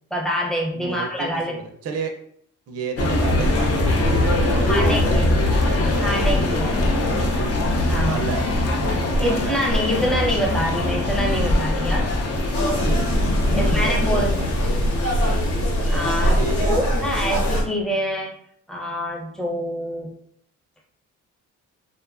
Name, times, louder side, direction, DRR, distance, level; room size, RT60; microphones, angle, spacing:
voice 1, 0.1-1.6 4.7-5.4 6.0-6.7 7.9-8.2 9.2-12.1 13.5-14.4 15.9-16.4 16.7-18.4 18.7-20.1, equal, ahead, -1 dB, 0.6 m, -25 dB
voice 2, 0.7-2.1 2.7-6.0 7.0-7.5 8.1-8.4 8.8-9.0 9.3-9.6 13.5-15.0 16.3-17.5, right 4 dB, 50° right, 4 dB, 0.5 m, -32 dB
sound 1, 3.0-16.7, left 1 dB, 50° left, 0.5 m, -22 dB
sound 2, 12.5-17.6, equal, 65° left, 1.0 m, -22 dB
2.6 x 2.3 x 2.3 m, 0.65 s
cardioid pair, 80°, 31 cm